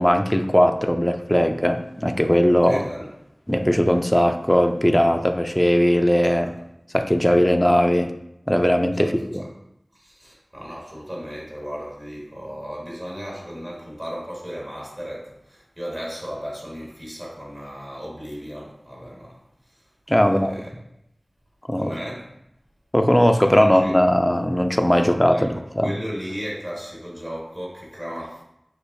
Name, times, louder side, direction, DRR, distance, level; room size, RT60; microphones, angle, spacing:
voice 1, 0.0-2.8 3.5-6.5 6.9-8.1 8.5-9.4 20.1-20.5 21.7-21.9 22.9-25.9, equal, 10° left, 6 dB, 0.3 m, -19 dB
voice 2, 2.7-3.1 6.2-6.5 9.0-9.5 9.9-19.4 20.2-20.7 21.8-22.3 23.4-23.9 25.3-25.5 25.8-28.4, equal, 40° right, -4 dB, 1.4 m, -35 dB
6.4 x 2.5 x 2.5 m, 0.82 s
wide cardioid pair, 45°, 0 cm